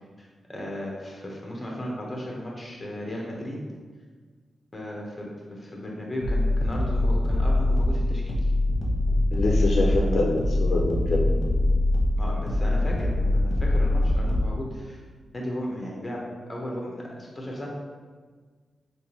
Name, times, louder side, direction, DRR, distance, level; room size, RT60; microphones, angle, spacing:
voice 1, 0.2-3.6 4.7-8.2 12.2-15.0 15.3-16.2 16.5-17.7, equal, 25° left, -2 dB, 0.9 m, -35 dB
sound 1, 6.2-14.5, left 1 dB, 45° left, 0.9 m, -23 dB
voice 2, 9.3-11.4, left 2 dB, 70° left, -2 dB, 0.5 m, -25 dB
3.4 x 3.0 x 3.0 m, 1.5 s
cardioid pair, 80°, 0 cm